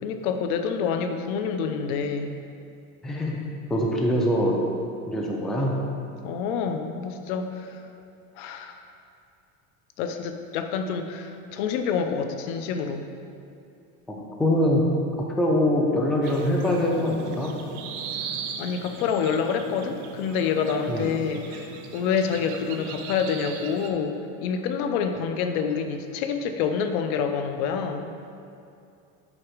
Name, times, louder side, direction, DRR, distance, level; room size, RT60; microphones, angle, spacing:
voice 1, 0.0-2.4 6.2-7.8 8.4-8.8 10.0-13.0 18.6-28.1, left 6 dB, 70° left, 7 dB, 0.7 m, -27 dB
voice 2, 3.0-3.4 3.7-4.6 5.1-5.8 14.1-17.5 20.9-21.2, left 1 dB, ahead, -1 dB, 0.4 m, -24 dB
sound 1, 16.2-23.9, right 7 dB, 65° right, 0.7 m, -38 dB
4.9 x 4.1 x 4.9 m, 2.6 s
supercardioid pair, 115°, 46 cm